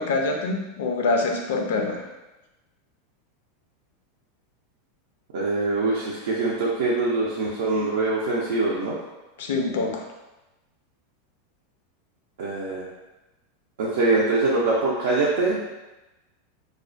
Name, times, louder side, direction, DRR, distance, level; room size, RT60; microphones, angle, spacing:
voice 1, 0.0-2.0 9.4-10.1, left 3 dB, 80° left, 2 dB, 0.4 m, -25 dB
voice 2, 5.3-9.0 12.4-12.9 13.8-15.7, right 3 dB, 80° right, -5 dB, 0.4 m, -23 dB
2.3 x 2.1 x 2.5 m, 1.0 s
supercardioid pair, 145°, 0 cm